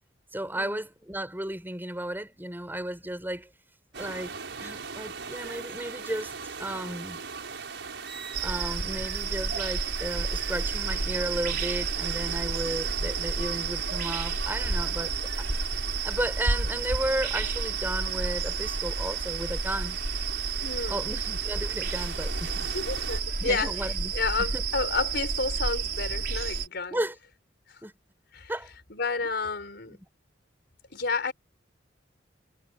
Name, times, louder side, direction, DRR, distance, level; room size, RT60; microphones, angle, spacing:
voice 1, 0.3-3.5 4.0-6.3 6.6-7.2 8.4-15.5 16.0-20.0 20.9-22.7 23.4-24.1 24.5-24.6 26.9-27.1 27.8-27.9 28.5-28.7 29.2-29.3 29.9-30.0, right 1 dB, 10° right, 6.2 m, -34 dB
sound 1, 3.9-23.2, right 5 dB, 80° right, 5.9 m, -40 dB
sound 2, 8.3-26.7, right 4 dB, 60° right, 4.4 m, -31 dB
voice 2, 20.6-21.0 22.7-27.0 27.7-27.8 28.3-28.5 28.9-30.0 30.9-31.3, left 4 dB, 65° left, 4.5 m, -31 dB
head